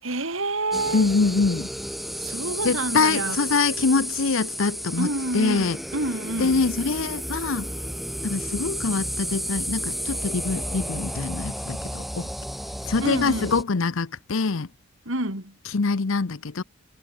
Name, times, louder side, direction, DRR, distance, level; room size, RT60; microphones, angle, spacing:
voice 1, 0.0-1.2 2.2-3.4 5.0-6.7 13.0-13.6 15.1-15.6, right 2 dB, 70° right, 5.2 m, -28 dB
sound 1, 0.7-13.6, equal, ahead, 5.1 m, -32 dB
voice 2, 0.9-1.7 2.6-5.1 5.3-5.8 6.4-7.7 8.2-12.3 12.9-14.7 15.7-16.6, left 4 dB, 70° left, 0.8 m, -24 dB
head